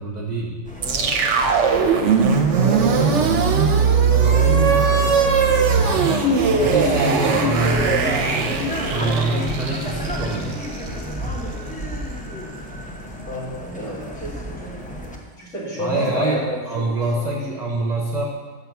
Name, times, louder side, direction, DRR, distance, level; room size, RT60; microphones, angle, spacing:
voice 1, 0.0-0.6 4.1-4.8 6.6-10.6 15.8-18.2, right 2 dB, 35° right, -3 dB, 0.9 m, -25 dB
sound 1, 0.6-15.2, equal, 10° left, 0.6 m, -31 dB
voice 2, 0.8-1.5 2.4-4.5 4.8-5.4 7.7-8.4 13.3-14.8 15.4-16.9 17.1-17.4, left 1 dB, 60° left, -8 dB, 2.9 m, -31 dB
sound 2, 0.8-11.0, right 5 dB, 60° right, 1.0 m, -19 dB
6.1 x 5.7 x 7.0 m, 1.4 s
omnidirectional pair, 1.5 m